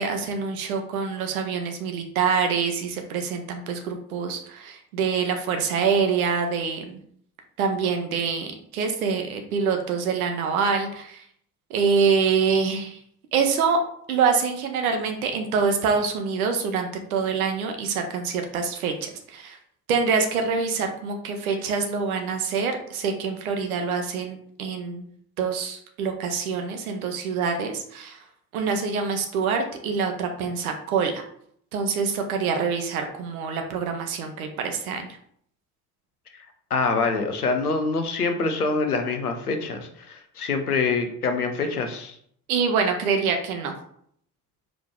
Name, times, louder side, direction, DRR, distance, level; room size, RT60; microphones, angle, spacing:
voice 1, 0.0-7.0 7.6-11.2 11.7-13.0 13.3-13.8 14.1-19.6 19.9-25.1 25.4-28.2 28.5-31.2 31.7-35.0 42.5-43.7, right 5 dB, 75° right, 5 dB, 0.7 m, -25 dB
voice 2, 36.7-42.1, left 4 dB, 90° left, 6 dB, 0.5 m, -25 dB
4.8 x 3.0 x 3.4 m, 0.66 s
figure-of-eight pair, 45°, 44 cm